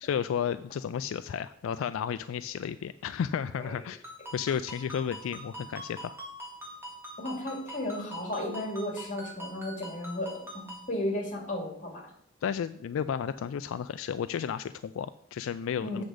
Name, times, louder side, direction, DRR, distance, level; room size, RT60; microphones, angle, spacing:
voice 1, 0.0-4.0 4.3-6.2 12.4-16.0, left 8 dB, 80° left, 12 dB, 0.3 m, -32 dB
Ringtone, 4.0-10.9, equal, 10° right, 2.1 m, -44 dB
voice 2, 7.2-12.1 15.8-16.0, left 1 dB, 40° left, 1 dB, 2.6 m, -34 dB
7.8 x 6.4 x 5.0 m, 0.68 s
head